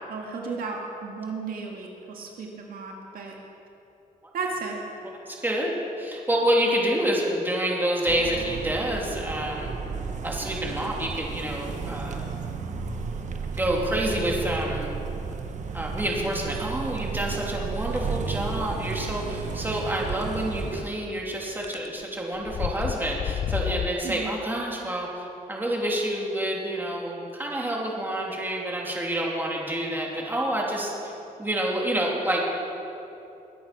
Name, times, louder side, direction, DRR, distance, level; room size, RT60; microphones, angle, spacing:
voice 1, 0.1-3.4 4.3-4.8 24.0-24.3, right 4 dB, 75° right, 0 dB, 2.0 m, -34 dB
voice 2, 5.0-5.7 6.0-9.7 10.2-12.3 13.6-14.9 15.7-31.1 31.4-32.5, right 1 dB, 15° right, -2 dB, 2.9 m, -28 dB
sound 1, 8.1-20.8, right 5 dB, 55° right, 1.2 m, -33 dB
sound 2, 21.6-21.9 22.3-23.9, left 9 dB, 50° left, 0.4 m, -30 dB
22.5 x 8.5 x 5.9 m, 2.8 s
cardioid pair, 105°, 15 cm